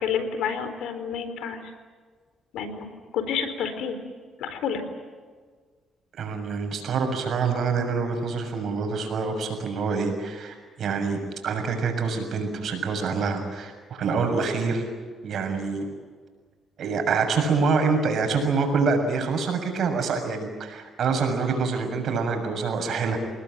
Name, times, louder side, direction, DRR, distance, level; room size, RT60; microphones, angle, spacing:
voice 1, 0.0-1.6 2.5-2.9 3.1-4.0 4.4-4.8, left 7 dB, 85° left, 9 dB, 4.1 m, -29 dB
voice 2, 6.2-14.9 15.2-15.9 16.8-23.2, right 4 dB, 65° right, 5 dB, 6.8 m, -26 dB
27.5 x 20.0 x 9.2 m, 1.6 s
cardioid pair, 90°, 0 cm